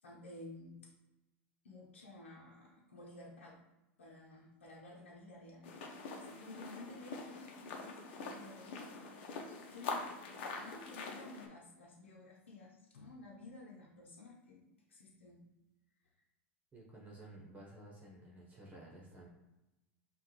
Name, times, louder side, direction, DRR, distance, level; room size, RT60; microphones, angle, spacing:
voice 1, 0.0-0.8 1.6-3.6 4.0-7.6 8.3-8.8 9.7-10.1 10.6-15.4, left 2 dB, 90° left, -4 dB, 0.9 m, -53 dB
sound 1, 5.6-11.5, left 4 dB, 65° left, 0.9 m, -45 dB
voice 2, 16.7-19.3, right 1 dB, 25° right, -3 dB, 1.2 m, -53 dB
5.7 x 2.5 x 3.2 m, 0.99 s
hypercardioid pair, 100°, 6 cm